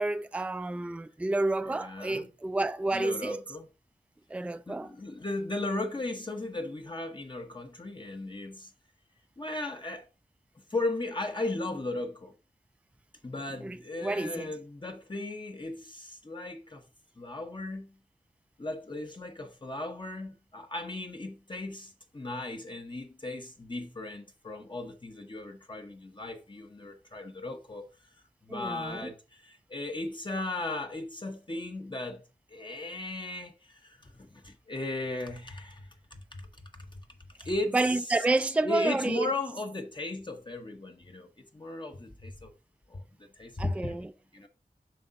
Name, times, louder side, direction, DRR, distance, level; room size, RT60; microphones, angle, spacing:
voice 1, 0.0-3.4 4.3-4.9 13.6-14.5 28.5-29.1 37.7-39.3 43.6-44.1, right 2 dB, 10° right, 0.3 m, -30 dB
voice 2, 1.6-2.3 2.9-3.7 4.7-8.7 9.4-10.1 10.7-12.3 13.2-16.8 17.2-18.0 18.6-27.9 28.4-36.5 36.8-37.0 37.4-37.8 38.6-42.5 42.9-43.0 43.4-44.5, left 2 dB, 30° left, 0.8 m, -36 dB
7.5 x 5.4 x 2.6 m
wide cardioid pair, 75°, 15 cm